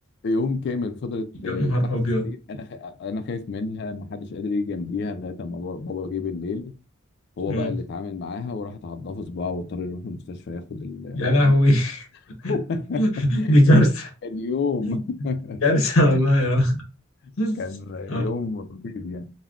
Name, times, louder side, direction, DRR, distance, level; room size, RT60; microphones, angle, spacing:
voice 1, 0.2-2.0 2.2-6.7 7.4-11.6 12.5-13.8 14.2-15.6 16.1-16.2 17.2-19.3, left 4 dB, 55° left, 0.4 m, -30 dB
voice 2, 1.4-2.3 7.5-7.7 11.1-12.1 12.4-12.5 13.0-14.1 14.8-15.0 15.6-16.8 17.4-17.6 18.1-18.3, left 1 dB, 85° left, 0.7 m, -19 dB
3.5 x 2.1 x 2.3 m
head